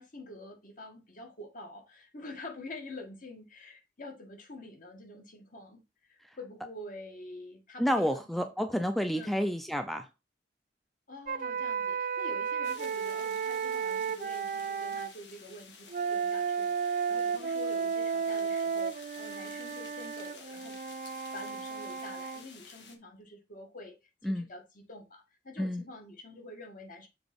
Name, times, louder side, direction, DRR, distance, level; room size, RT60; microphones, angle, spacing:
voice 1, 0.0-8.5 9.1-9.4 11.1-20.8 21.3-24.0 24.2-27.1, left 2 dB, 50° left, 1.9 m, -47 dB
voice 2, 7.8-10.1 24.2-24.5 25.6-25.8, equal, ahead, 0.5 m, -30 dB
sound 1, 11.3-15.1 15.9-22.4, right 6 dB, 50° right, 0.6 m, -33 dB
sound 2, 12.6-23.0, left 5 dB, 80° left, 1.6 m, -52 dB
7.1 x 3.9 x 5.3 m
head